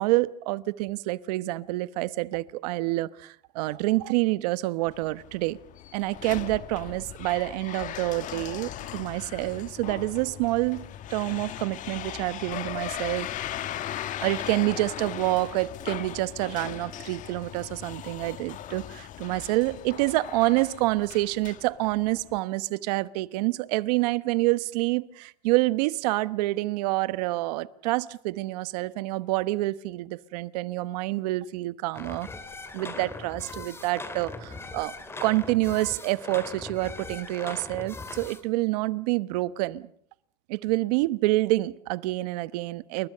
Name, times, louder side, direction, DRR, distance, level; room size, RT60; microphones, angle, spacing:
voice 1, 0.0-5.6 5.9-13.3 14.2-32.3 32.7-34.9 35.2-39.9 40.5-43.1, right 19 dB, 75° right, 1.1 m, -27 dB
sound 1, 4.9-22.4, left 11 dB, 40° left, 1.5 m, -38 dB
sound 2, 31.9-38.4, left 3 dB, 10° left, 2.6 m, -40 dB
29.0 x 21.5 x 6.7 m
supercardioid pair, 140°, 21 cm